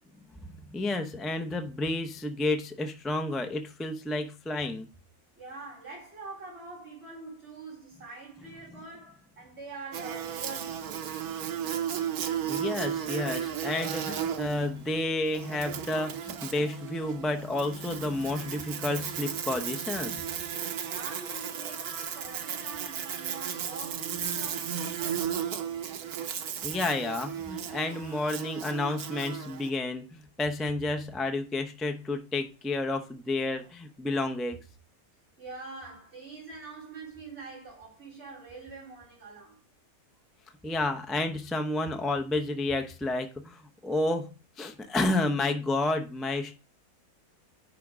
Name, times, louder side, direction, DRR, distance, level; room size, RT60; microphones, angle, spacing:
voice 1, 0.7-4.9 8.7-8.8 12.5-20.2 26.6-34.6 40.6-44.3 44.6-46.5, left 2 dB, ahead, 0.4 m, -30 dB
voice 2, 5.4-11.1 20.8-25.5 33.6-33.7 35.4-39.6, right 3 dB, 45° right, 4.0 m, -44 dB
Buzz, 9.9-29.7, right 9 dB, 85° right, 1.3 m, -35 dB
10.0 x 3.5 x 5.0 m
omnidirectional pair, 1.5 m